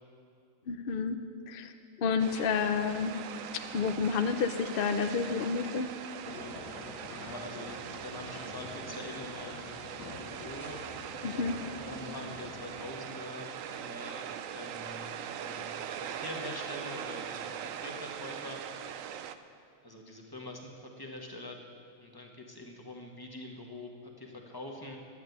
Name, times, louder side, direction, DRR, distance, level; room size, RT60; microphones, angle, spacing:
voice 1, 0.7-1.2 1.5-1.7 2.0-3.1 3.5-5.9 11.2-11.6, left 5 dB, 55° left, 8 dB, 0.6 m, -30 dB
sound 1, 2.2-19.4, right 9 dB, 65° right, 0.9 m, -41 dB
sound 2, 6.2-12.9, left 4 dB, 90° left, 1.6 m, -46 dB
voice 2, 7.1-9.8 10.1-10.9 11.9-19.1 19.8-21.6 22.0-25.0, left 1 dB, 15° left, 1 dB, 1.3 m, -45 dB
10.5 x 8.7 x 9.4 m, 2.5 s
omnidirectional pair, 1.7 m